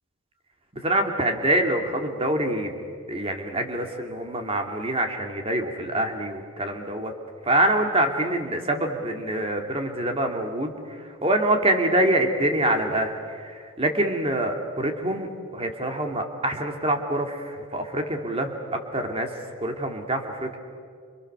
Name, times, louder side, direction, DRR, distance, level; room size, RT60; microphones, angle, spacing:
voice 1, 0.7-7.1 7.4-20.6, right 1 dB, 25° right, 4 dB, 2.7 m, -25 dB
29.5 x 28.5 x 6.9 m, 2.2 s
head